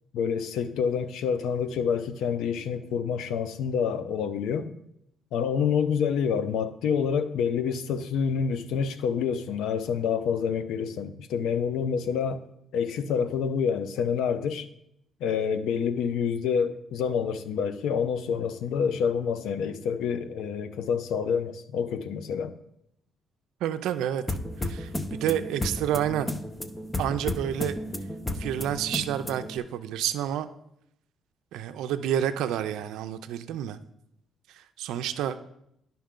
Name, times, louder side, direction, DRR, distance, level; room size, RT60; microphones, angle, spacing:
voice 1, 0.1-4.7 5.3-12.4 12.7-14.7 15.2-22.5, left 7 dB, 85° left, 0.6 m, -27 dB
voice 2, 23.6-24.2 24.6-26.3 27.0-27.7 28.4-30.5 31.5-33.8 34.5-35.4, right 10 dB, 90° right, 0.4 m, -29 dB
sound 1, 24.3-29.6, left 1 dB, 15° left, 0.6 m, -33 dB
10.0 x 5.7 x 3.7 m
cardioid pair, 90°, 0 cm